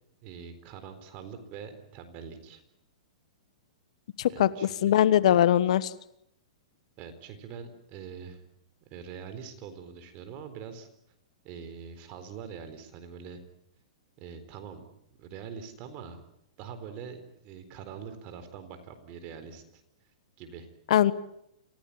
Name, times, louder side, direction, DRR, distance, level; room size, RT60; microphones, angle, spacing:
voice 1, 0.2-2.6 4.2-4.9 7.0-8.4 8.9-10.9 11.4-13.4 14.2-14.8 15.2-16.2 16.6-19.8 20.4-20.7, right 6 dB, 35° right, 9 dB, 4.2 m, -43 dB
voice 2, 4.2-4.5 4.8-5.9 20.9-21.1, left 11 dB, 65° left, 16 dB, 1.2 m, -21 dB
27.0 x 16.5 x 8.7 m, 0.79 s
hypercardioid pair, 140°, 4 cm